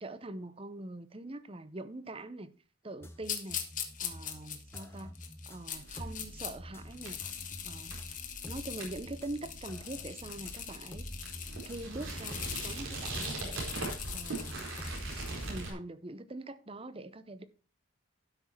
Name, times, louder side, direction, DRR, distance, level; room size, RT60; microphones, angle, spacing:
voice 1, 0.0-2.5 2.8-3.6 4.0-5.2 5.5-8.0 8.5-11.1 11.7-14.7 15.4-17.4, right 2 dB, 25° right, 0.7 m, -43 dB
sound 1, 3.0-15.5, equal, 10° left, 0.9 m, -48 dB
sound 2, 3.2-6.5 6.9-15.6, left 9 dB, 40° left, 1.4 m, -42 dB
sound 3, 5.7-15.7, right 2 dB, 80° right, 4.4 m, -42 dB
12.0 x 6.2 x 4.5 m
head